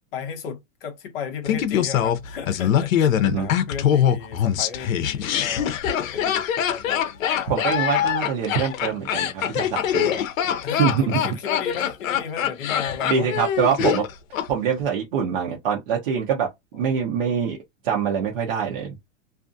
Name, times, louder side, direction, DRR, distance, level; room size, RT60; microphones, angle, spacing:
voice 1, 0.1-3.1 3.4-7.9 10.6-13.3 16.8-17.4, left 7 dB, 45° left, 0.8 m, -35 dB
Laughter, 1.5-14.5 14.7-14.8, left 9 dB, 80° left, 0.7 m, -23 dB
voice 2, 7.5-10.2 10.8-11.2 13.0-14.0 14.5-17.6 17.8-18.9, right 7 dB, 40° right, 0.7 m, -24 dB
2.5 x 2.4 x 2.5 m
supercardioid pair, 175°, 40 cm